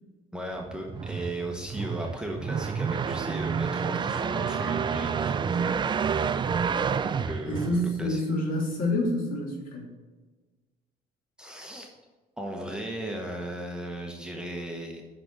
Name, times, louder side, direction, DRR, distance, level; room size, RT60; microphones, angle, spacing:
voice 1, 0.3-5.9 7.3-8.2 11.4-11.9 12.4-15.0, right 1 dB, 5° right, 1 dB, 1.1 m, -36 dB
sound 1, 0.6-8.2, right 6 dB, 30° right, 0.4 m, -29 dB
voice 2, 7.4-9.9, left 1 dB, 55° left, -2 dB, 2.9 m, -28 dB
6.0 x 5.9 x 6.5 m, 1.3 s
cardioid pair, 110°, 17 cm